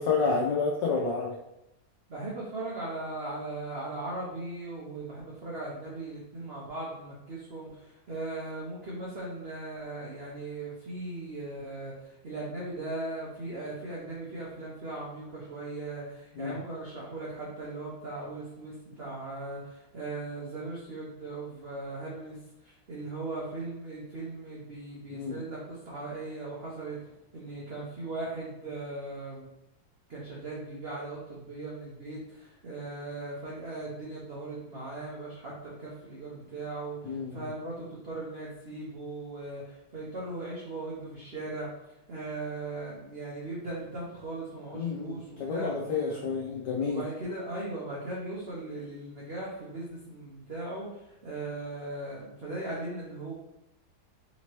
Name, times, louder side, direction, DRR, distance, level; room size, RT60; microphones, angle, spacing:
voice 1, 0.0-1.3 16.4-16.5 25.1-25.4 37.0-37.4 44.7-47.0, left 5 dB, 70° left, -2 dB, 1.0 m, -29 dB
voice 2, 2.1-29.5 30.1-41.7 42.1-46.2 46.9-53.3, right 2 dB, 90° right, -6 dB, 0.5 m, -38 dB
4.3 x 2.9 x 2.9 m, 0.87 s
omnidirectional pair, 2.3 m